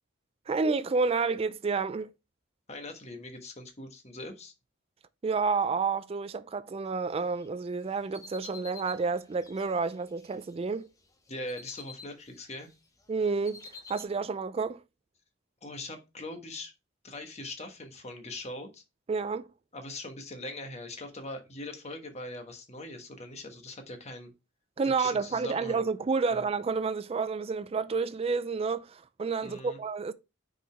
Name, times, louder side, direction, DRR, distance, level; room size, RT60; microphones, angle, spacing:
voice 1, 0.5-2.1 5.2-10.9 13.1-13.6 13.9-14.8 19.1-19.5 24.8-30.1, right 4 dB, 30° right, 0.3 m, -30 dB
voice 2, 2.7-4.5 11.3-12.7 15.6-16.7 17.0-18.8 19.7-24.3 24.8-25.8 26.3-26.5 29.4-29.8, left 2 dB, 30° left, 1.2 m, -41 dB
sound 1, 7.3-10.5 11.0-12.7 13.0-14.0, left 4 dB, 15° left, 0.8 m, -49 dB
6.2 x 4.8 x 3.3 m
head